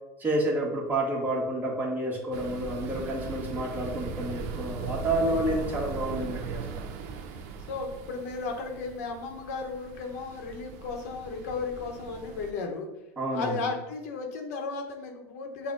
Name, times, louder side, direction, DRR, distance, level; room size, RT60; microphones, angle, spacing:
voice 1, 0.2-6.8 13.2-13.7, right 1 dB, 20° right, -2 dB, 1.3 m, -29 dB
sound 1, 2.3-12.5, right 5 dB, 70° right, 0.5 m, -39 dB
voice 2, 7.7-12.9 13.3-15.7, left 4 dB, 85° left, 3 dB, 0.9 m, -35 dB
6.4 x 2.2 x 3.7 m, 0.96 s
supercardioid pair, 115°, 8 cm